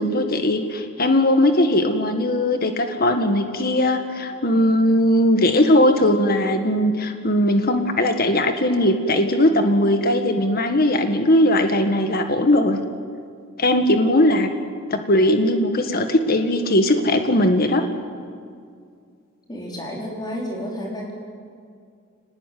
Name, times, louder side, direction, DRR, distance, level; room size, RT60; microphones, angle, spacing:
voice 1, 0.0-12.8 13.6-14.5 14.9-17.8, left 1 dB, 45° left, 6 dB, 1.7 m, -19 dB
voice 2, 19.5-21.1, equal, 20° left, -2 dB, 4.4 m, -31 dB
29.0 x 19.5 x 9.4 m, 2.3 s
head